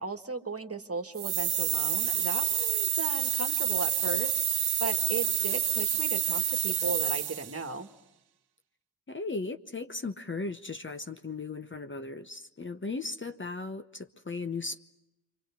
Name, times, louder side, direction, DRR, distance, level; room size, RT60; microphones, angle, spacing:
voice 1, 0.0-7.9, right 3 dB, 35° right, 1.8 m, -36 dB
sound 1, 1.2-7.6, right 10 dB, 80° right, 0.8 m, -28 dB
voice 2, 9.1-14.8, left 3 dB, 30° left, 1.0 m, -37 dB
28.0 x 25.0 x 5.8 m
cardioid pair, 60°, 38 cm